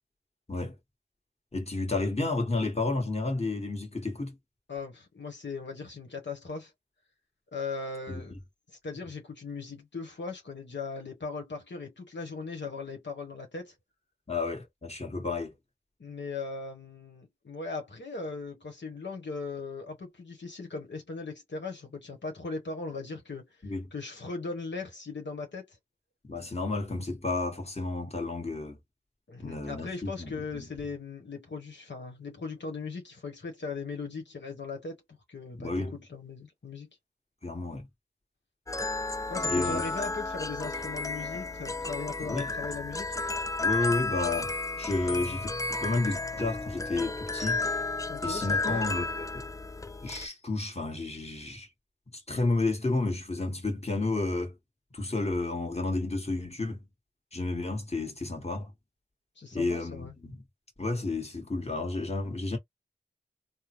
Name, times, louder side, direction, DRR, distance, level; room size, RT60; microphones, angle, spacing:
voice 1, 1.5-4.3 8.1-8.2 14.3-15.5 23.6-23.9 26.2-28.8 29.4-30.7 35.5-36.0 37.4-37.9 39.4-39.8 42.2-42.5 43.6-44.5 44.8-45.5 45.8-47.6 48.2-49.4 50.0-51.7 52.3-54.5 54.9-56.9 57.3-58.7 59.5-60.4 60.8-62.6, left 2 dB, 35° left, 1.6 m, -31 dB
voice 2, 4.7-6.7 7.5-8.3 8.7-13.7 16.0-25.8 29.3-35.0 35.3-36.9 39.3-43.2 48.1-48.8 59.4-60.1, left 4 dB, 80° left, 1.2 m, -38 dB
sound 1, 38.7-50.3, left 3 dB, 20° left, 0.4 m, -33 dB
3.5 x 2.1 x 3.0 m
wide cardioid pair, 45°, 19 cm